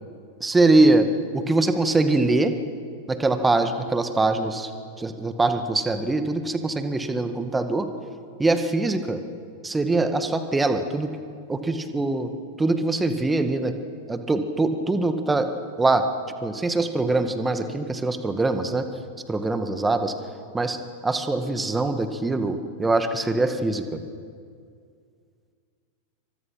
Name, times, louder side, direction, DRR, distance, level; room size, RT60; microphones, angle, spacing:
voice 1, 0.4-1.1 1.3-2.5 3.1-4.7 5.0-7.9 8.4-9.2 9.6-11.1 11.5-12.3 12.6-13.7 14.1-15.5 15.8-16.1 16.4-18.9 19.3-20.1 20.5-20.8 21.0-24.0, right 2 dB, 10° right, 8 dB, 1.8 m, -23 dB
28.0 x 25.0 x 6.0 m, 2.2 s
figure-of-eight pair, 90°, 0 cm